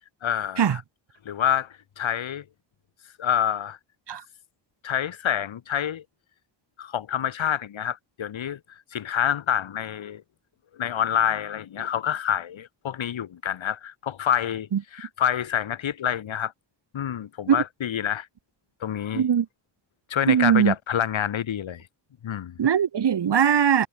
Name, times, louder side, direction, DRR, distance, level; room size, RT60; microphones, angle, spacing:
voice 1, 0.2-0.8 1.3-2.4 3.2-3.8 4.8-6.0 6.8-8.6 8.9-10.2 10.8-16.5 16.9-18.3 18.8-19.2 20.1-21.8 22.2-22.5, left 9 dB, 85° left, 2.4 m, -27 dB
voice 2, 19.1-19.5 20.3-20.7 22.6-23.9, right 8 dB, 60° right, 2.5 m, -20 dB
wide cardioid pair, 170°, 45 cm